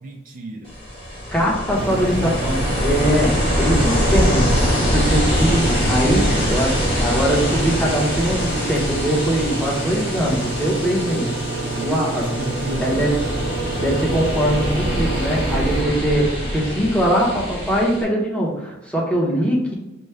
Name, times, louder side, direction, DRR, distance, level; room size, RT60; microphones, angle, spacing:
voice 1, 0.0-0.8 6.4-6.6 8.7-8.8 11.7-13.1, right 2 dB, 40° right, -1 dB, 0.4 m, -33 dB
Ocean, 0.7-18.0, equal, 30° left, 1.5 m, -24 dB
voice 2, 1.3-4.5 4.9-12.3 12.8-13.2 13.8-19.7, equal, 5° left, -5 dB, 1.0 m, -21 dB
sound 1, 1.7-15.8, right 2 dB, 80° right, 1.2 m, -28 dB
6.1 x 2.3 x 3.3 m, 0.96 s
head